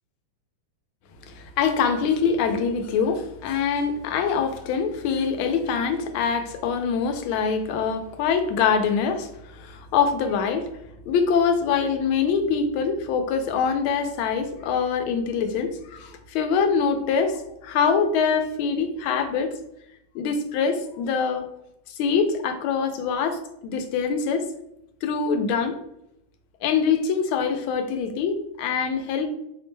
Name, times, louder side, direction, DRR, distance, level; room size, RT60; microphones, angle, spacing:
voice 1, 1.3-9.3 9.6-10.7 11.1-19.5 20.1-21.5 22.0-24.5 25.0-25.8 26.6-29.3, left 6 dB, 80° left, 7 dB, 1.4 m, -24 dB
4.7 x 2.1 x 3.2 m, 0.81 s
omnidirectional pair, 2.3 m